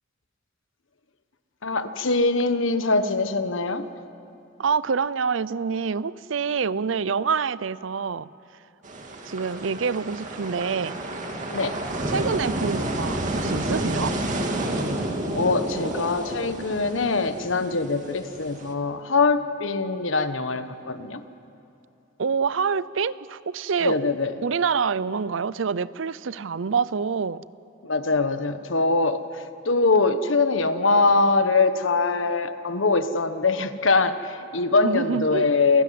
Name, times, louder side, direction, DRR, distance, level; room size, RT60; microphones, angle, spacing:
voice 1, 1.6-3.9 11.5-11.8 15.3-21.2 23.8-24.3 27.8-35.8, left 3 dB, 80° left, 10 dB, 1.2 m, -23 dB
voice 2, 4.6-8.3 9.2-11.0 12.1-14.1 22.2-24.0 24.4-27.5 34.8-35.5, right 5 dB, 75° right, 18 dB, 0.6 m, -26 dB
sound 1, 8.8-18.7, right 1 dB, 40° right, 2.4 m, -30 dB
28.5 x 17.0 x 9.5 m, 2.8 s
head